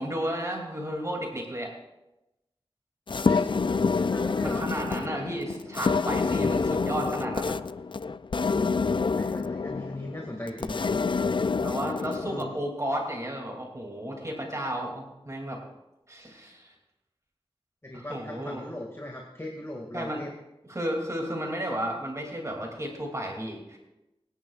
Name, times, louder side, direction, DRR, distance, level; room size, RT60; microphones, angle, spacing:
voice 1, 0.0-1.7 4.4-7.6 11.6-15.6 16.1-16.7 17.9-18.6 19.9-20.2 20.7-23.8, equal, 30° right, 0 dB, 2.7 m, -33 dB
sound 1, 3.1-12.6, left 4 dB, 55° left, 0.4 m, -27 dB
voice 2, 3.1-3.6 3.9-4.7 9.1-10.9 12.3-12.6 17.8-20.3, left 1 dB, 25° left, -1 dB, 2.1 m, -38 dB
24.5 x 10.5 x 2.4 m, 0.95 s
wide cardioid pair, 50°, 10 cm